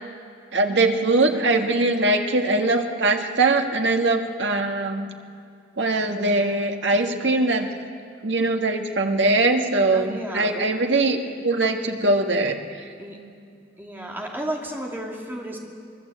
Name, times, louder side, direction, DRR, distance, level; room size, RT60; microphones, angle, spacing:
voice 1, 0.5-5.1 5.8-7.8 8.2-12.8, right 2 dB, 75° right, 4 dB, 1.8 m, -22 dB
voice 2, 9.9-10.5 13.0-13.2 13.8-15.6, right 1 dB, 10° right, -1 dB, 2.8 m, -32 dB
24.5 x 20.5 x 8.1 m, 2.3 s
head